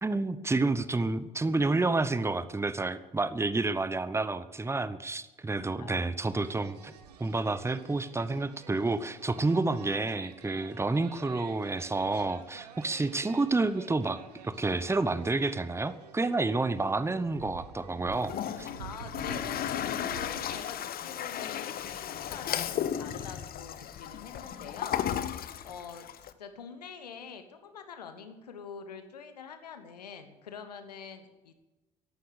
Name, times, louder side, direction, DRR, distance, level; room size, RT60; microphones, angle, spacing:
voice 1, 0.0-6.9 7.2-18.7, right 3 dB, 15° right, 14 dB, 0.9 m, -29 dB
voice 2, 5.7-6.2 18.8-25.4 25.6-26.1 26.4-31.5, left 6 dB, 80° left, 9 dB, 1.2 m, -45 dB
sound 1, 6.2-20.6, right 7 dB, 80° right, 0.9 m, -50 dB
Toilet flush, 18.1-26.3, left 10 dB, 50° left, 0.9 m, -35 dB
14.5 x 11.5 x 6.6 m, 1.1 s
figure-of-eight pair, 45°, 20 cm